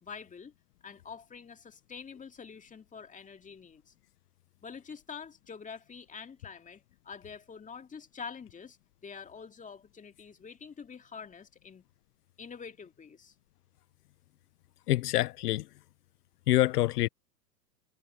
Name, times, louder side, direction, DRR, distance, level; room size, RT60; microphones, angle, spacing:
voice 1, 0.0-0.5 0.8-3.9 4.6-8.8 9.0-11.8 12.4-13.3, left 6 dB, 15° left, 2.3 m, -46 dB
voice 2, 14.9-15.6 16.5-17.1, left 15 dB, 65° left, 0.8 m, -26 dB
hypercardioid pair, 105°, 49 cm